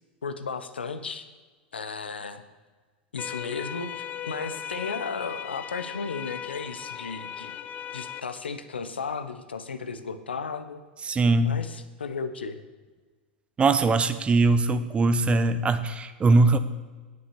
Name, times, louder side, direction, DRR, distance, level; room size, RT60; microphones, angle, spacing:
voice 1, 0.2-1.2 1.7-2.4 3.1-7.6 7.9-10.8 11.4-12.6, left 5 dB, 80° left, 10 dB, 0.9 m, -34 dB
sound 1, 3.2-8.2, left 9 dB, 30° left, 0.5 m, -38 dB
voice 2, 11.0-11.6 13.6-16.6, right 3 dB, 20° right, 12 dB, 0.8 m, -21 dB
9.6 x 8.2 x 6.9 m, 1.3 s
figure-of-eight pair, 95°, 6 cm